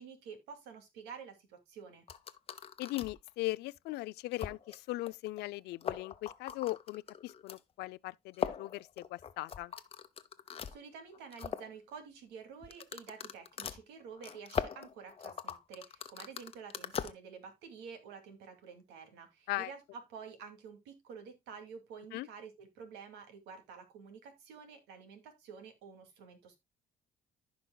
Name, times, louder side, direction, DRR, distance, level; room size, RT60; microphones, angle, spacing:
voice 1, 0.0-2.0 10.7-26.6, right 6 dB, 90° right, 2.4 m, -50 dB
sound 1, 2.1-3.3 3.8-3.9 4.3-4.8 5.1-5.2 5.4-5.5 5.7-7.6 8.3-10.8 11.1-11.7 12.6-17.1, left 7 dB, 35° left, 0.8 m, -40 dB
voice 2, 2.8-9.7 19.5-19.7 22.1-22.3, left 18 dB, 80° left, 0.4 m, -39 dB
15.0 x 5.3 x 2.2 m
cardioid pair, 110°, 17 cm